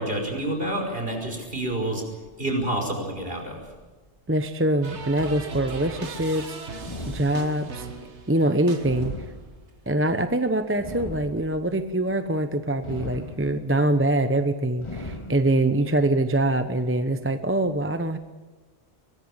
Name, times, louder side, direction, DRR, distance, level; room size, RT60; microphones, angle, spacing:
voice 1, 0.0-2.0 2.4-3.6, right 1 dB, 55° right, 2 dB, 5.6 m, -28 dB
voice 2, 4.3-6.6 7.1-7.9 8.3-9.1 9.9-18.2, right 1 dB, 10° right, 9 dB, 0.8 m, -24 dB
sound 1, 4.8-9.5, right 3 dB, 70° right, 1.9 m, -39 dB
sound 2, 6.8-7.8 8.8-9.9 10.8-11.8 12.8-13.8 14.8-15.8, left 1 dB, 25° left, 2.2 m, -38 dB
23.0 x 20.5 x 7.4 m, 1.3 s
omnidirectional pair, 1.2 m